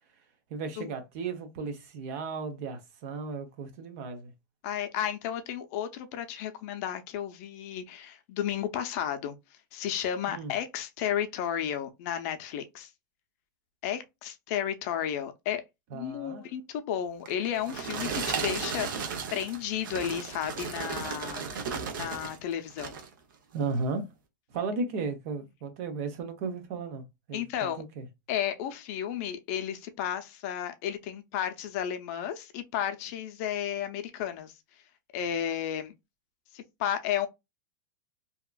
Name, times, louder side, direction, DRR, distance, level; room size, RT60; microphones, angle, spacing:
voice 1, 0.5-4.3 10.3-10.5 15.9-16.4 23.5-24.0 24.5-28.1, right 4 dB, 50° right, 0.7 m, -35 dB
voice 2, 4.6-9.4 9.7-12.9 13.8-15.6 15.9-18.9 19.3-21.5 22.0-23.0 27.3-27.8 28.3-34.5 35.1-35.9 36.5-37.3, left 10 dB, 50° left, 0.6 m, -33 dB
Popcorn Pour, 17.3-22.4 22.7-23.1 23.7-23.8, right 5 dB, 85° right, 0.8 m, -35 dB
2.8 x 2.4 x 2.3 m
supercardioid pair, 145°, 11 cm